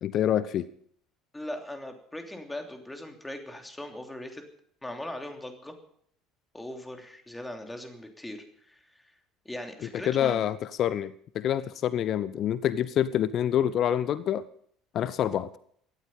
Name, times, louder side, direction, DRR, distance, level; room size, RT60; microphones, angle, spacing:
voice 1, 0.0-0.7 10.1-14.4 14.9-15.5, left 10 dB, 45° left, 18 dB, 0.6 m, -27 dB
voice 2, 1.3-4.5 4.8-5.8 6.5-9.1 9.4-10.4, left 1 dB, 10° left, 4 dB, 3.0 m, -40 dB
17.5 x 13.5 x 5.5 m, 0.63 s
figure-of-eight pair, 60°, 0 cm